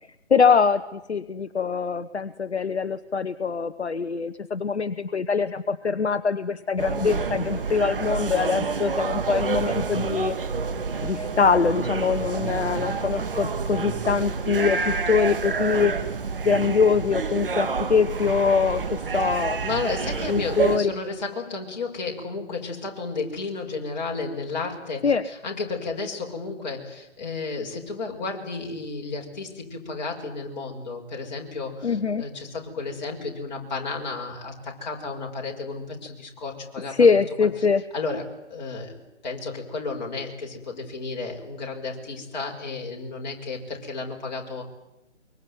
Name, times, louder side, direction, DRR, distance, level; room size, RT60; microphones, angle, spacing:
voice 1, 0.3-10.4 11.0-15.9 16.4-19.6 20.3-20.9 25.0-25.3 31.8-32.2 36.9-37.8, left 5 dB, 70° left, 11 dB, 1.1 m, -23 dB
sound 1, 6.8-20.8, right 5 dB, 50° right, 2.4 m, -28 dB
voice 2, 19.6-37.2 37.9-38.2 38.5-44.6, left 3 dB, 40° left, 0 dB, 5.8 m, -33 dB
24.0 x 23.5 x 9.6 m, 0.91 s
figure-of-eight pair, 150°, 35 cm